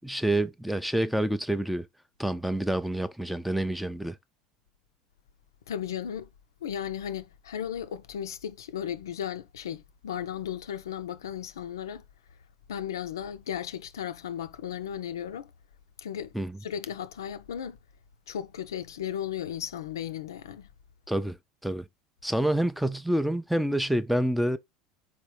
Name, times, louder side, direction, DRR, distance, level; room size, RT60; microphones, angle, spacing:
voice 1, 0.0-1.9 2.2-4.2 16.3-16.6 21.1-21.4 21.6-21.8 22.2-24.6, right 1 dB, ahead, 0.4 m, -27 dB
voice 2, 5.7-6.3 6.6-12.0 12.7-15.5 16.0-16.3 16.6-17.8 18.3-20.7, left 9 dB, 70° left, 0.4 m, -35 dB
4.3 x 3.5 x 3.1 m
figure-of-eight pair, 70°, 2 cm